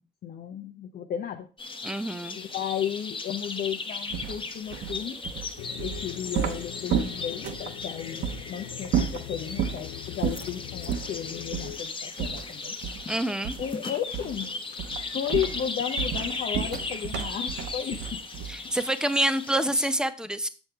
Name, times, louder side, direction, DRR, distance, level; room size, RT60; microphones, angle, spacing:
voice 1, 0.0-1.5 2.3-5.2 5.8-12.8 13.6-14.5 15.0-18.2 18.6-18.7, left 9 dB, 55° left, 0.7 m, -34 dB
sound 1, 1.6-19.9, left 3 dB, 25° left, 1.0 m, -37 dB
voice 2, 1.8-2.4 13.1-13.5 18.5-20.5, right 1 dB, 5° right, 0.6 m, -27 dB
sound 2, 4.1-7.7 8.2-8.4 8.8-9.8 10.2-10.5 10.9-11.1 11.5-11.7 12.2-13.1 13.4-13.8 14.1-14.4 14.8-18.7, right 8 dB, 65° right, 0.9 m, -31 dB
sound 3, 5.6-11.8, left 15 dB, 90° left, 0.4 m, -42 dB
7.2 x 7.0 x 3.3 m
cardioid pair, 95°, 19 cm